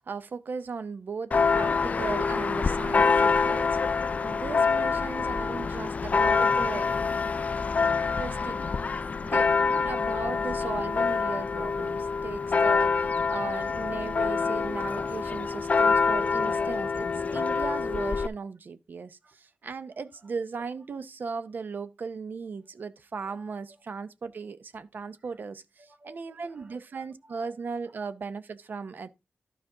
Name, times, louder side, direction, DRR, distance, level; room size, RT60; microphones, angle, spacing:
voice 1, 0.0-3.8 4.2-7.0 8.2-8.6 9.2-29.1, right 5 dB, 60° right, 0.6 m, -37 dB
Church bell, 1.3-18.3, left 5 dB, 40° left, 0.4 m, -26 dB
voice 2, 7.7-10.5 16.4-16.5 20.0-20.3 26.0-27.5 27.9-28.0, right 1 dB, 40° right, 1.7 m, -57 dB
12.0 x 5.0 x 3.8 m
wide cardioid pair, 135°, 4 cm